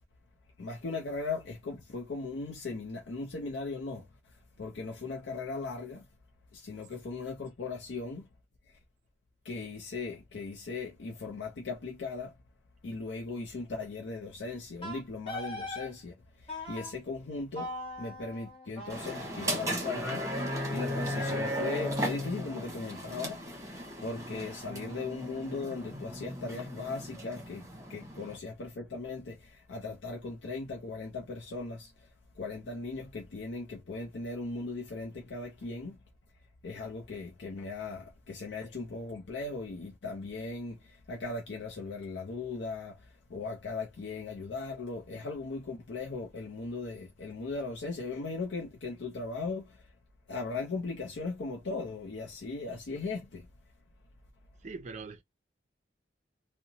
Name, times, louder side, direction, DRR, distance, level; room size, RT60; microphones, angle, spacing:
voice 1, 0.6-4.1 4.6-6.0 6.5-8.3 9.4-12.3 12.8-16.1 16.4-17.7 18.0-20.4 20.7-31.9 32.4-36.0 36.6-49.8 50.3-53.5, left 3 dB, 85° left, 0.5 m, -38 dB
Wind instrument woodwind instrument, 14.8-15.9 16.5-16.9 17.6-20.6, left 1 dB, 35° left, 1.1 m, -42 dB
sound 1, 18.9-28.4, equal, 20° right, 1.0 m, -36 dB
voice 2, 54.6-55.2, right 4 dB, 40° right, 0.4 m, -41 dB
2.8 x 2.1 x 2.6 m
head